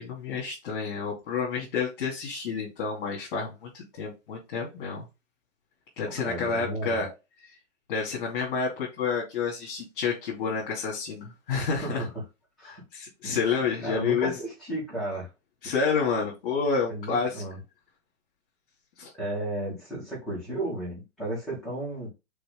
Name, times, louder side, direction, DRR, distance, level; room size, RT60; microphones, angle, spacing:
voice 1, 0.0-5.0 6.0-7.1 7.9-12.0 12.6-14.3 15.6-17.4 19.0-19.1, left 5 dB, 45° left, 2.8 m, -29 dB
voice 2, 6.2-7.0 11.7-12.2 12.6-12.8 13.2-13.4 13.8-15.3 16.9-17.6 19.1-22.1, right 1 dB, ahead, 2.9 m, -34 dB
6.8 x 3.9 x 3.7 m
hypercardioid pair, 165°, 37 cm